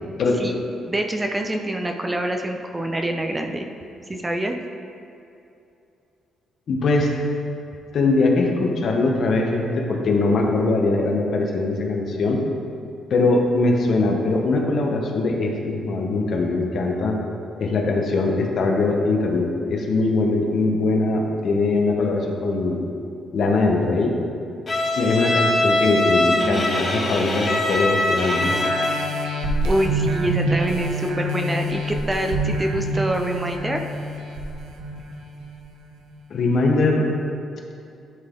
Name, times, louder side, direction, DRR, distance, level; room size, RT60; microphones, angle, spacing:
voice 1, 0.4-3.7 4.1-4.5 26.3-26.8 29.6-33.8, right 1 dB, 20° right, 4 dB, 0.6 m, -26 dB
voice 2, 6.7-7.1 7.9-12.4 13.1-17.2 17.6-22.9 23.3-24.2 25.0-28.6 36.3-37.1, left 3 dB, 60° left, 1 dB, 1.0 m, -21 dB
Bowed string instrument, 24.7-29.2, left 2 dB, 40° left, 1.5 m, -22 dB
sound 1, 28.4-35.6 36.1-36.2, right 1 dB, 85° right, 0.8 m, -26 dB
11.0 x 4.0 x 3.8 m, 2.7 s
cardioid pair, 90°, 0 cm